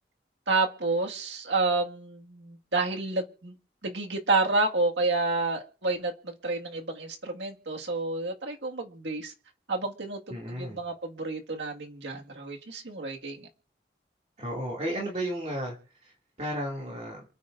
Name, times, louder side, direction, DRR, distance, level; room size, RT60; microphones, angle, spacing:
voice 1, 0.5-3.5 3.8-9.3 9.7-13.5, right 3 dB, 85° right, 2 dB, 1.9 m, -29 dB
voice 2, 10.3-10.8 14.4-15.7 16.0-17.2, right 1 dB, 40° right, -2 dB, 2.5 m, -33 dB
28.0 x 9.5 x 2.6 m, 0.41 s
head